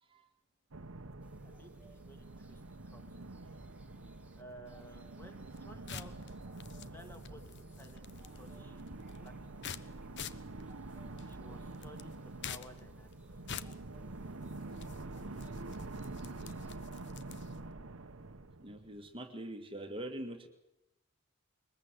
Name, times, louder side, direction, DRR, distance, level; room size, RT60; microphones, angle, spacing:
sound 1, 0.7-19.2, right 2 dB, 80° right, 1.1 m, -47 dB
sound 2, 1.2-16.7, right 1 dB, 5° right, 2.7 m, -61 dB
voice 1, 1.4-3.3 4.4-6.1 6.9-10.0 11.3-13.4, right 1 dB, 10° left, 5 dB, 2.8 m, -56 dB
sound 3, 5.4-17.7, left 7 dB, 60° left, 1.0 m, -49 dB
voice 2, 18.6-20.5, right 1 dB, 25° right, 4 dB, 1.7 m, -43 dB
22.5 x 21.0 x 8.0 m, 0.87 s
head